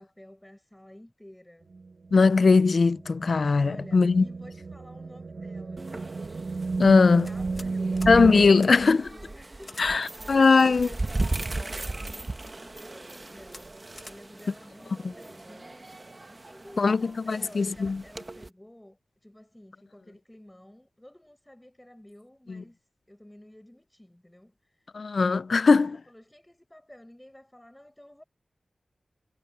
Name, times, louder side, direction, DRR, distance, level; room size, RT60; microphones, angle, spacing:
voice 1, 0.0-1.7 3.6-6.2 7.2-13.8 14.0-15.9 16.3-22.8 23.1-24.8 25.7-28.2, left 1 dB, 10° left, 7.1 m, -51 dB
sound 1, 1.7-8.5, right 3 dB, 65° right, 0.8 m, -33 dB
voice 2, 2.1-4.2 6.8-7.3 8.1-9.1 9.8-10.9 16.8-17.0 17.3-18.0 22.5-22.6 24.9-26.0, left 4 dB, 65° left, 0.3 m, -20 dB
sound 2, 5.8-18.5, right 2 dB, 30° right, 1.2 m, -37 dB
sound 3, 7.2-7.7 8.0-8.2 8.6-8.7 9.6-9.9 10.6-11.4 12.1-12.5 13.0-13.2 13.5-13.6 14.0-14.2, left 3 dB, 45° left, 0.9 m, -47 dB
wide cardioid pair, 105°, 0 cm